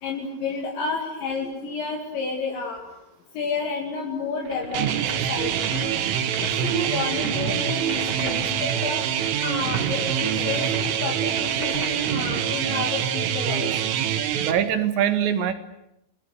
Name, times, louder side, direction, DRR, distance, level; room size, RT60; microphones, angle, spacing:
voice 1, 0.0-2.8 3.3-5.9 6.4-9.0 9.4-13.7, left 4 dB, 70° left, 1 dB, 4.6 m, -30 dB
sound 1, 4.4-12.1, right 2 dB, 25° right, 3.0 m, -37 dB
sound 2, 4.7-14.5, right 10 dB, 85° right, 4.1 m, -25 dB
voice 2, 14.4-15.5, right 9 dB, 70° right, 10 dB, 3.7 m, -23 dB
28.0 x 21.0 x 8.1 m, 0.81 s
omnidirectional pair, 5.6 m